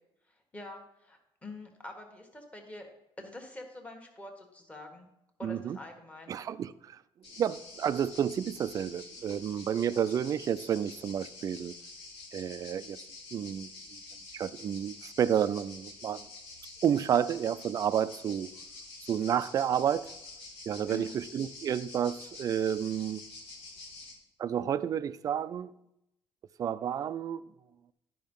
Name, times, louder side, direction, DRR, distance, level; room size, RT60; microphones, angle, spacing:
voice 1, 0.5-2.9 3.2-5.1 5.4-6.3 20.9-21.2, left 2 dB, 10° left, 1.4 m, -45 dB
voice 2, 5.4-5.8 6.3-7.0 7.4-11.7 12.3-13.0 13.3-14.0 14.3-16.3 16.8-18.5 19.1-20.1 20.7-23.2 24.4-25.7 26.6-27.4, right 9 dB, 35° right, 0.4 m, -30 dB
sound 1, 7.2-24.1, left 3 dB, 85° left, 2.7 m, -48 dB
11.5 x 5.4 x 5.3 m
cardioid pair, 155°, 10 cm